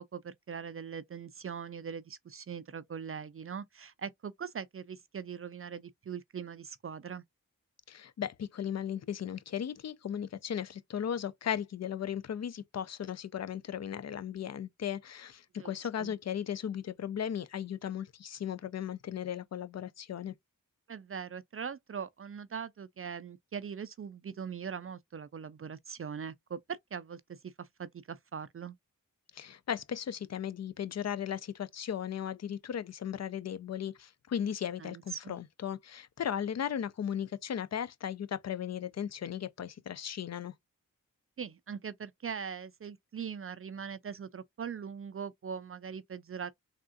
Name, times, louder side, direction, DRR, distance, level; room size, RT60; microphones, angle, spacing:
voice 1, 0.0-7.2 15.6-16.1 20.9-28.8 34.8-35.3 41.4-46.5, right 7 dB, 40° right, 0.4 m, -41 dB
voice 2, 7.9-20.3 29.3-40.5, left 9 dB, 50° left, 0.5 m, -36 dB
3.5 x 2.4 x 2.4 m
cardioid pair, 45°, 34 cm